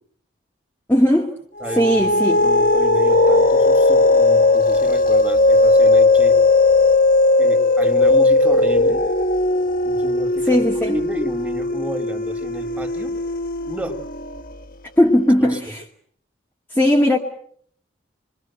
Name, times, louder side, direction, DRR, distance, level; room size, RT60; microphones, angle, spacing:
voice 1, 0.9-1.3 1.8-2.4 10.5-10.9 15.0-15.8 16.7-17.2, left 1 dB, 10° left, 2.1 m, -17 dB
sound 1, 1.6-14.4, left 2 dB, 50° left, 1.6 m, -17 dB
voice 2, 1.6-6.4 7.4-9.0 9.8-13.1 13.7-14.0 15.4-15.6, right 1 dB, 10° right, 3.4 m, -31 dB
28.5 x 23.5 x 7.8 m
head